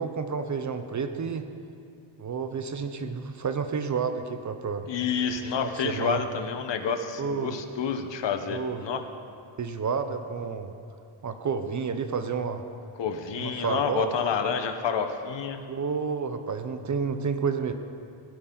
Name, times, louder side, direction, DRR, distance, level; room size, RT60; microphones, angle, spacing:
voice 1, 0.0-1.5 2.2-4.9 5.6-6.2 7.2-7.6 8.5-8.8 9.6-10.7 11.2-12.6 13.4-14.1 15.7-17.7, right 5 dB, 35° right, 8 dB, 0.6 m, -30 dB
voice 2, 4.9-9.0 13.0-15.6, left 6 dB, 60° left, 7 dB, 1.0 m, -29 dB
16.5 x 12.5 x 3.9 m, 2.4 s
wide cardioid pair, 160°, 49 cm